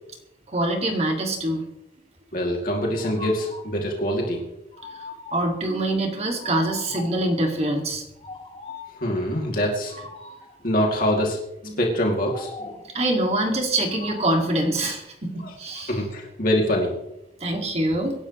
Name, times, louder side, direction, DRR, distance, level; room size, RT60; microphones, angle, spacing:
voice 1, 0.5-1.7 4.9-5.0 5.3-8.0 11.6-11.8 12.8-15.9 17.4-18.1, right 1 dB, 35° right, 2 dB, 2.2 m, -24 dB
voice 2, 2.3-4.4 9.0-10.0 10.6-11.4 11.8-12.5 15.4-15.5 15.9-16.9, equal, 50° left, -1 dB, 2.7 m, -24 dB
sound 1, 2.9-3.7 4.7-5.6 6.4-7.3 8.2-9.0 9.9-10.6 12.2-12.9 13.9-14.7, left 3 dB, 30° left, 2.4 m, -40 dB
Marimba xylophone, 5.6-7.7, right 5 dB, ahead, 3.4 m, -45 dB
24.0 x 11.5 x 3.2 m, 0.86 s
head